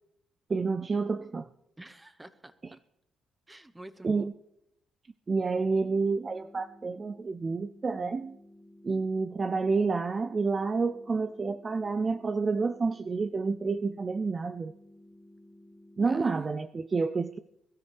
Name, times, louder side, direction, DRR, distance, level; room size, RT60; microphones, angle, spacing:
voice 1, 0.5-1.5 4.0-4.3 5.3-8.4 8.8-14.7 16.0-17.4, right 4 dB, 35° right, 12 dB, 0.4 m, -29 dB
voice 2, 1.8-2.8 3.5-4.3 16.1-16.6, right 1 dB, 10° right, 13 dB, 1.0 m, -49 dB
sound 1, 6.0-16.0, left 1 dB, 5° left, 1.8 m, -55 dB
22.0 x 13.0 x 3.4 m, 0.81 s
cardioid pair, 90°, 0 cm